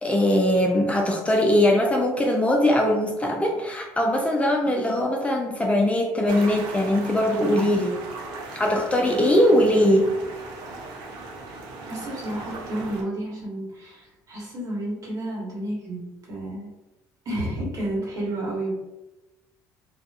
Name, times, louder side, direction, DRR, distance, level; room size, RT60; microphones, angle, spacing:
voice 1, 0.0-8.0 8.6-10.1, left 1 dB, 15° left, 0 dB, 0.4 m, -21 dB
sound 1, 6.3-13.0, right 3 dB, 70° right, 0.6 m, -37 dB
voice 2, 11.9-16.7 17.2-18.7, right 1 dB, 45° right, -5 dB, 1.3 m, -31 dB
2.5 x 2.4 x 2.4 m, 1.0 s
supercardioid pair, 80°, 8 cm